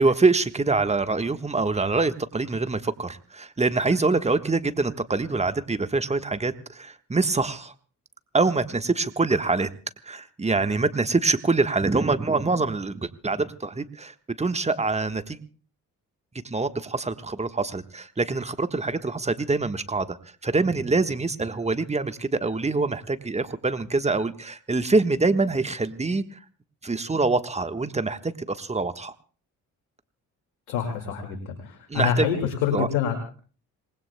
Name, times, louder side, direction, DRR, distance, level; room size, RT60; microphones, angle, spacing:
voice 1, 0.0-7.7 8.3-9.7 10.1-15.4 16.4-20.2 20.4-26.4 26.8-29.1 31.9-32.3 32.7-32.9, right 3 dB, 15° right, 10 dB, 1.3 m, -25 dB
voice 2, 30.7-33.2, left 8 dB, 75° left, 4 dB, 2.2 m, -26 dB
27.0 x 19.5 x 2.2 m, 0.39 s
hypercardioid pair, 45°, 42 cm